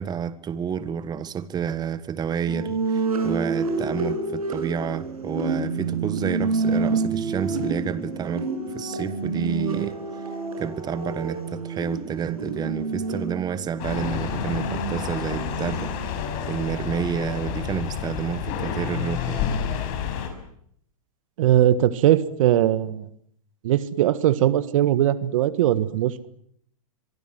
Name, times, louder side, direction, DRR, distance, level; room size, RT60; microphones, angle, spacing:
voice 1, 0.0-8.5 8.7-10.0 10.6-19.5, right 7 dB, 20° right, 1.6 m, -30 dB
sound 1, 2.5-16.2, right 4 dB, 85° right, 6.9 m, -28 dB
sound 2, 13.8-20.3, left 8 dB, 45° left, 6.5 m, -29 dB
voice 2, 21.4-23.1 23.6-26.3, right 12 dB, 65° right, 1.6 m, -20 dB
24.5 x 24.0 x 7.8 m
hypercardioid pair, 120°, 18 cm